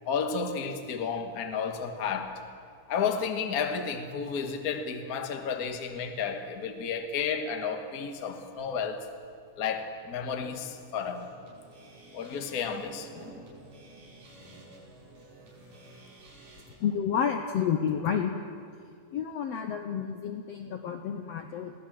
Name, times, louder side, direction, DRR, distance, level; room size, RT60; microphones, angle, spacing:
voice 1, 0.0-2.4 2.9-9.0 9.6-11.3 12.1-13.4, left 6 dB, 45° left, 6 dB, 1.2 m, -32 dB
sound 1, 11.0-16.8, right 2 dB, 65° right, 6.6 m, -52 dB
voice 2, 16.8-18.3 19.1-21.7, left 8 dB, 70° left, 6 dB, 1.6 m, -30 dB
22.5 x 16.5 x 7.6 m, 2.3 s
omnidirectional pair, 3.8 m